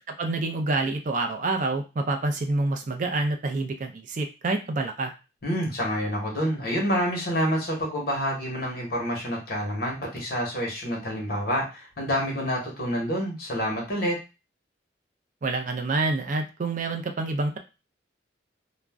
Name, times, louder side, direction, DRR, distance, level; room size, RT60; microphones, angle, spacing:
voice 1, 0.1-5.1 15.4-17.6, right 2 dB, 40° right, 5 dB, 0.3 m, -27 dB
voice 2, 5.4-14.2, equal, 55° left, -1 dB, 1.0 m, -28 dB
2.4 x 2.0 x 3.4 m, 0.29 s
head